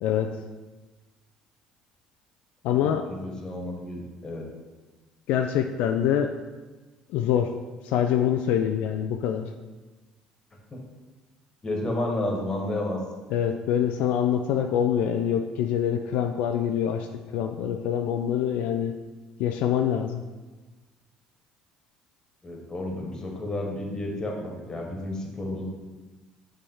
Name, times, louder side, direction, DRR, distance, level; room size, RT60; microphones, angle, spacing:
voice 1, 0.0-0.4 2.6-3.1 5.3-6.4 7.1-7.6 7.8-9.5 13.3-17.1 17.3-19.0 19.4-20.2, left 9 dB, 75° left, 6 dB, 0.3 m, -25 dB
voice 2, 2.8-4.4 10.7-10.8 11.6-13.0 22.4-25.7, left 1 dB, 25° left, 0 dB, 1.5 m, -31 dB
5.4 x 3.5 x 5.5 m, 1.2 s
supercardioid pair, 80°, 3 cm